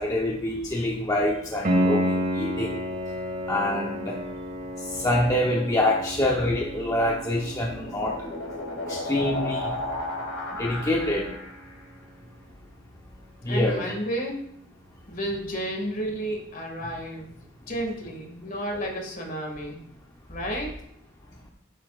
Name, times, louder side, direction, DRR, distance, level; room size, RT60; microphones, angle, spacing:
voice 1, 0.0-2.8 3.5-4.2 4.8-8.2 8.9-9.7 10.6-11.3 13.4-13.9 18.7-18.9, left 1 dB, 15° left, -2 dB, 0.9 m, -26 dB
Piano, 1.6-12.3 15.6-15.7, equal, 50° right, 1.8 m, -32 dB
sound 1, 7.4-11.8, left 2 dB, 65° left, 2.5 m, -34 dB
voice 2, 13.4-14.4 15.1-17.3 17.7-19.8 20.3-20.7, right 1 dB, 45° left, 1 dB, 2.2 m, -31 dB
11.0 x 9.4 x 2.5 m, 0.74 s
head